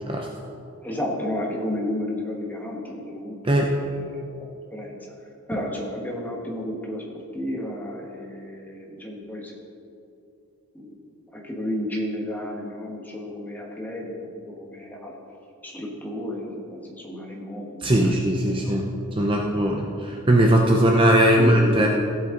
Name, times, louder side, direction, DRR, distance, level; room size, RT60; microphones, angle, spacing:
voice 1, 0.8-4.2 4.7-5.0 5.5-7.0 7.3-9.5 10.7-11.0 11.3-15.1 15.6-18.8 19.4-19.5 19.8-20.2 21.4-21.9, left 1 dB, 10° left, -2 dB, 1.5 m, -32 dB
voice 2, 3.4-3.8 17.8-18.9 19.2-21.9, right 1 dB, 25° right, 0 dB, 0.7 m, -19 dB
15.5 x 8.1 x 3.9 m, 2.7 s
head